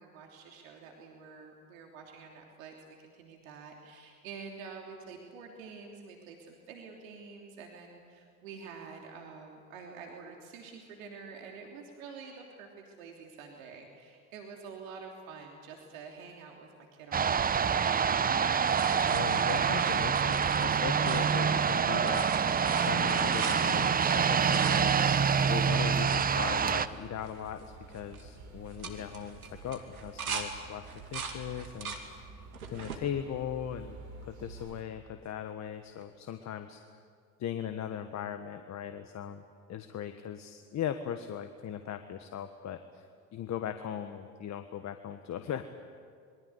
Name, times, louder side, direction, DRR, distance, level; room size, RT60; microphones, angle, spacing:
voice 1, 0.0-18.2, right 5 dB, 70° right, 1 dB, 3.3 m, -48 dB
sound 1, 17.1-26.9, right 7 dB, 20° right, 0.9 m, -26 dB
sound 2, 17.1-34.8, right 4 dB, 40° right, 4.5 m, -50 dB
sound 3, 18.7-21.7 21.9-26.3 26.9-27.0 27.2-27.6 27.9-28.2 28.7-30.5 30.8-32.0 32.5-33.0 33.7-34.4 36.0-36.1, right 5 dB, 85° right, 2.7 m, -41 dB
voice 2, 19.1-22.3 22.7-25.2 25.5-32.2 32.7-36.8 37.4-39.4 39.7-43.1 43.3-45.6, left 9 dB, 40° left, 8 dB, 1.5 m, -39 dB
27.0 x 23.0 x 8.2 m, 2.2 s
hypercardioid pair, 75°, 42 cm